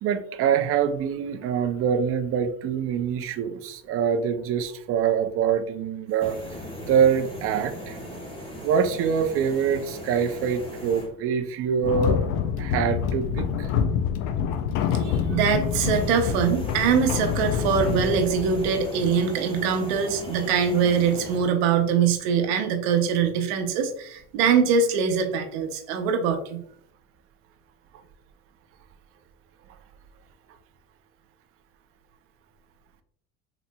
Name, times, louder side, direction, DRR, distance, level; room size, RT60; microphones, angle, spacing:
voice 1, 0.0-6.4 6.9-8.0 8.6-12.2 12.6-13.7, right 7 dB, 45° right, 8 dB, 0.5 m, -25 dB
sound 1, 6.1-11.1 15.6-21.4, equal, 15° left, 0.9 m, -38 dB
sound 2, 11.8-19.2, left 7 dB, 70° left, 0.4 m, -27 dB
voice 2, 15.0-26.6, right 6 dB, 90° right, 6 dB, 0.7 m, -23 dB
3.9 x 3.0 x 2.2 m, 0.66 s
cardioid pair, 120°, 32 cm